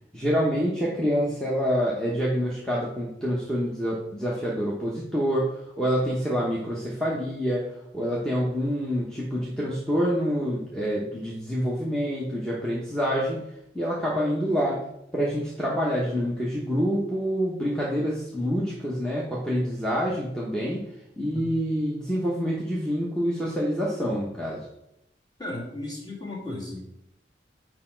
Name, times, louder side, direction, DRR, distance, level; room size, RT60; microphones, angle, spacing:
voice 1, 0.1-7.7 7.9-13.4 13.7-14.8 15.1-20.8 21.2-24.6, equal, 5° left, -6 dB, 1.0 m, -27 dB
voice 2, 25.4-26.9, left 1 dB, 20° left, -4 dB, 2.0 m, -35 dB
6.6 x 4.9 x 4.5 m, 0.83 s
head